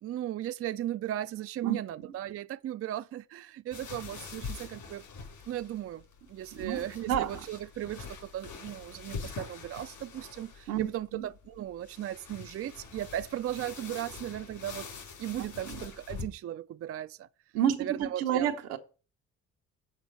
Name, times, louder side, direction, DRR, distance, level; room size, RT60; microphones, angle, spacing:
voice 1, 0.0-5.0 5.5-6.0 6.3-14.9 15.2-17.3 17.8-18.5, right 12 dB, 45° right, 0.4 m, -36 dB
sound 1, 3.7-16.2, left 5 dB, 70° left, 4.9 m, -44 dB
voice 2, 6.5-7.3 10.7-11.2 15.6-15.8 17.5-18.8, right 10 dB, 90° right, 1.1 m, -30 dB
8.1 x 5.0 x 6.6 m
supercardioid pair, 60°, 35 cm